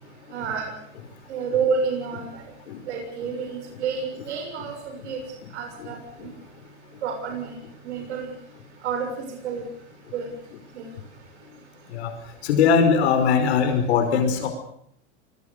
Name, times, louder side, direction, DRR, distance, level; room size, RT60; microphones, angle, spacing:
voice 1, 0.3-0.7 1.3-2.4 2.9-5.2 5.5-6.3 7.0-7.6 7.8-8.3 8.8-9.7 10.1-10.3 10.8-10.9, right 5 dB, 75° right, 3 dB, 6.9 m, -29 dB
voice 2, 12.4-14.5, left 6 dB, 65° left, 6 dB, 5.2 m, -21 dB
27.0 x 22.0 x 6.7 m, 0.69 s
supercardioid pair, 170°, 34 cm